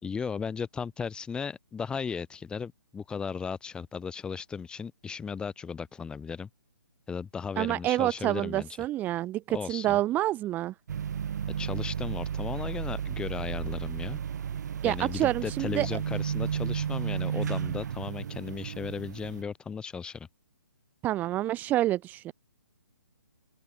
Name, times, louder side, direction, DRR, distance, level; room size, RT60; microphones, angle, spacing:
voice 1, 0.0-6.5 7.1-8.7 9.5-10.0 11.6-14.2 14.8-20.3, left 6 dB, 10° left, 1.9 m, -36 dB
voice 2, 7.6-10.7 14.8-15.9 21.0-22.3, right 14 dB, 15° right, 0.9 m, -28 dB
sound 1, 10.9-19.4, right 8 dB, 55° right, 0.9 m, -33 dB
open air
hypercardioid pair, 150°, 11 cm